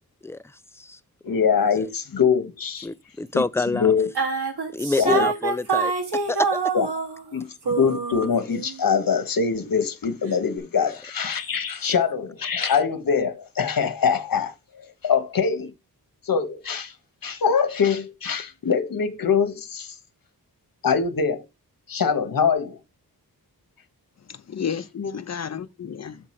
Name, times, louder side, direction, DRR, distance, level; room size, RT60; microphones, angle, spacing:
voice 1, 0.2-1.0 1.3-1.4 2.8-3.9 4.7-5.9 6.3-6.6 10.8-10.9, left 3 dB, 5° left, 0.3 m, -27 dB
voice 2, 1.2-2.9 3.3-4.1 5.0-5.3 6.7-6.9 7.3-15.7 16.3-16.9 17.2-19.9 20.8-21.4 21.9-22.8, left 6 dB, 60° left, 1.2 m, -23 dB
sound 1, 4.2-7.4 7.7-8.8, right 5 dB, 85° right, 1.8 m, -26 dB
voice 3, 24.3-26.3, left 7 dB, 45° left, 0.7 m, -32 dB
6.8 x 4.9 x 4.3 m
wide cardioid pair, 110°, 38 cm